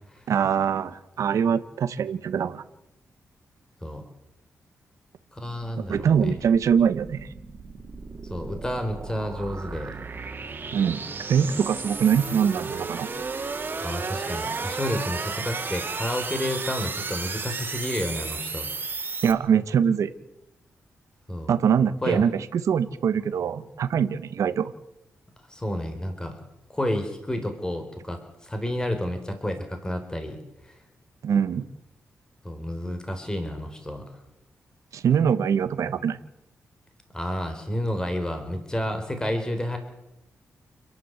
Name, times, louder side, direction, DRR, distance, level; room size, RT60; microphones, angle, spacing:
voice 1, 0.3-2.6 5.9-7.3 10.7-11.0 11.3-13.1 19.2-20.1 21.5-24.7 31.2-31.7 34.9-36.2, right 7 dB, 75° right, 11 dB, 1.3 m, -23 dB
voice 2, 5.3-6.3 8.3-9.9 13.8-18.7 21.3-21.5 22.0-22.2 25.5-26.4 26.7-30.4 30.6-30.8 32.4-34.2 37.1-39.8, left 1 dB, 15° left, 6 dB, 4.2 m, -30 dB
sound 1, 5.4-19.3, right 4 dB, 35° right, 3.1 m, -34 dB
29.5 x 11.0 x 8.2 m, 0.90 s
cardioid pair, 95°, 5 cm